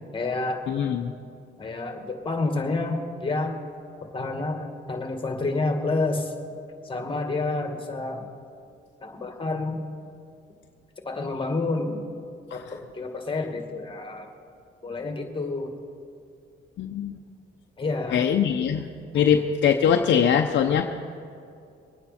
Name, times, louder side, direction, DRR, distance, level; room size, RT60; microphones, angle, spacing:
voice 1, 0.1-0.6 1.6-3.6 4.1-6.3 6.8-8.2 9.0-9.8 11.0-12.0 12.5-14.3 14.8-15.7 17.8-18.2 19.1-19.3, left 3 dB, 25° left, 4 dB, 2.1 m, -29 dB
voice 2, 0.7-1.1 12.5-12.6 16.8-17.2 18.1-18.9 19.1-20.9, left 8 dB, 65° left, 4 dB, 0.8 m, -22 dB
23.5 x 9.5 x 4.4 m, 2.5 s
cardioid pair, 90°, 20 cm